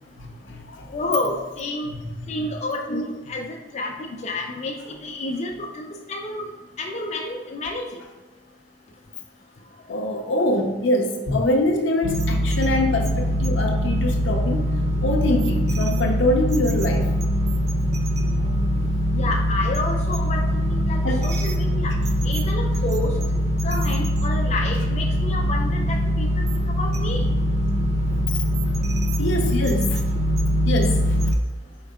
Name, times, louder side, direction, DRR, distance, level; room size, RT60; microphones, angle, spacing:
voice 1, 0.2-1.0 1.9-2.5 2.9-3.0 9.9-14.7 15.0-17.1 18.4-18.5 21.0-21.3 28.1-28.4 29.2-30.0 30.7-31.4, left 1 dB, 75° left, 3 dB, 0.6 m, -24 dB
voice 2, 0.9-1.9 2.3-6.5 6.8-8.0 19.1-21.9 22.2-23.2 23.6-26.3 26.8-27.3, left 2 dB, 35° left, 1 dB, 0.4 m, -29 dB
sound 1, 12.0-31.3, equal, 35° right, 0.3 m, -22 dB
4.8 x 4.3 x 2.3 m, 1.3 s
head